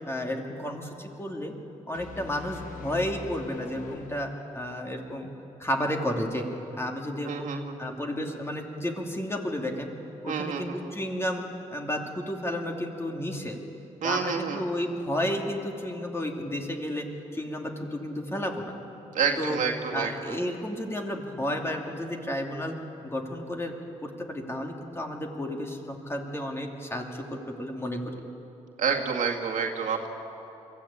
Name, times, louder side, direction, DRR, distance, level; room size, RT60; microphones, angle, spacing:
voice 1, 0.1-1.5 1.9-5.3 5.6-6.5 6.8-9.9 10.2-11.4 11.7-13.6 14.0-17.1 17.3-18.8 19.4-19.6 19.9-22.8 23.0-23.7 24.0-28.0, left 1 dB, 20° left, 1 dB, 2.8 m, -32 dB
sound 1, 1.9-4.9, left 4 dB, 70° left, 1.6 m, -44 dB
voice 2, 7.3-8.0 10.3-11.0 14.0-14.6 19.1-20.4 28.8-30.1, right 6 dB, 70° right, 1 dB, 2.1 m, -29 dB
23.0 x 14.5 x 8.7 m, 2.9 s
cardioid pair, 65°, 14 cm